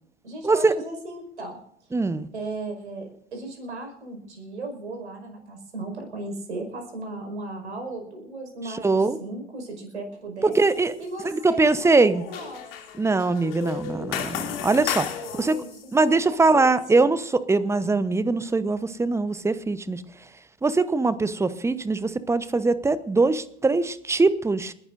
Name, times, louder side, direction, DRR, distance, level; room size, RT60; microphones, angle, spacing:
voice 1, 0.2-2.0 2.3-10.6 11.0-12.7 15.2-17.1, right 2 dB, 75° right, 4 dB, 5.4 m, -37 dB
voice 2, 1.9-2.3 8.8-9.2 10.4-10.9 11.2-12.2 13.0-15.1 15.4-15.6 15.9-20.0 20.6-24.7, right 3 dB, 10° right, 14 dB, 0.9 m, -22 dB
sound 1, 10.5-10.9 11.2-15.8, left 9 dB, 55° left, 2.8 m, -34 dB
30.0 x 11.5 x 2.6 m, 0.69 s
figure-of-eight pair, 85°, 34 cm